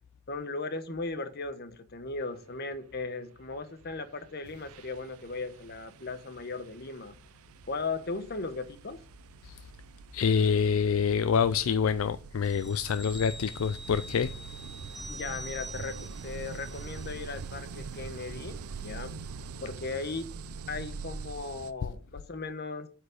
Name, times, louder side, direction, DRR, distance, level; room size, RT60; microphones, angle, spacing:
voice 1, 0.3-7.1 7.7-9.0 15.1-18.6 18.8-19.1 19.6-20.3 20.7-22.9, left 3 dB, 45° left, 1.0 m, -37 dB
sound 1, 3.9-4.1 4.4-21.7, right 5 dB, 75° right, 0.5 m, -44 dB
voice 2, 10.1-14.3, left 6 dB, 65° left, 0.4 m, -26 dB
sound 2, 12.4-17.5 17.9-18.0, right 1 dB, ahead, 0.7 m, -46 dB
8.6 x 4.8 x 6.4 m
head